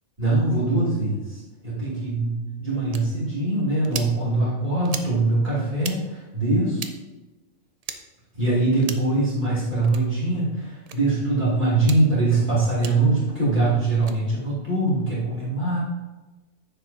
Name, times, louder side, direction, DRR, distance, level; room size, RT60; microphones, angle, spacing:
voice 1, 0.2-6.9 8.4-15.8, right 2 dB, 35° right, -9 dB, 3.0 m, -23 dB
sound 1, 2.9-3.0 3.8-4.1 4.8-5.1 5.8-6.0 6.8-6.9 7.8-8.0 8.8-9.1 9.8-10.0 10.8-11.0 11.8-12.0 12.8-12.9 13.9-14.2, right 6 dB, 55° right, 0.4 m, -35 dB
10.0 x 7.3 x 2.8 m, 1.1 s
omnidirectional pair, 1.4 m